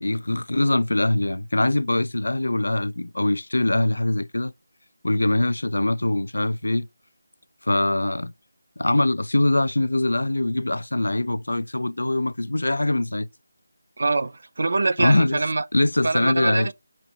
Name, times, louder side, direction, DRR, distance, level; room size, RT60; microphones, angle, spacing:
voice 1, 0.0-4.5 5.0-6.9 7.6-8.3 8.8-13.3 15.0-15.4 15.7-16.7, left 2 dB, 80° left, 0.4 m, -23 dB
voice 2, 14.0-15.7 16.0-16.7, right 3 dB, 60° right, 0.4 m, -24 dB
6.1 x 3.1 x 2.6 m
figure-of-eight pair, 165°, 0 cm